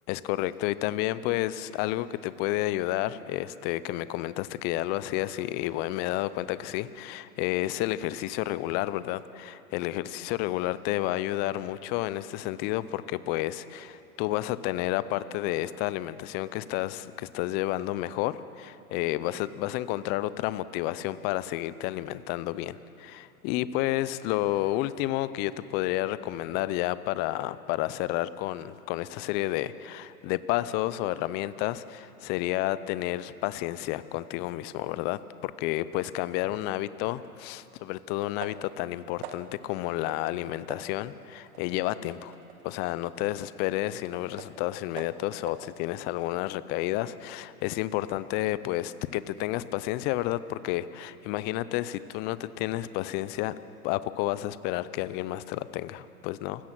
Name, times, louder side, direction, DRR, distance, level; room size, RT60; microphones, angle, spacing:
voice 1, 0.1-42.3 42.6-53.5 53.8-56.7, left 15 dB, 25° left, 16 dB, 0.5 m, -31 dB
sound 1, 37.2-37.3 38.4-38.8 39.2-39.7 40.1-40.3 40.7-44.7 45.0-45.7, right 8 dB, 45° right, 1.7 m, -46 dB
29.5 x 16.5 x 6.1 m, 2.9 s
hypercardioid pair, 120°, 45 cm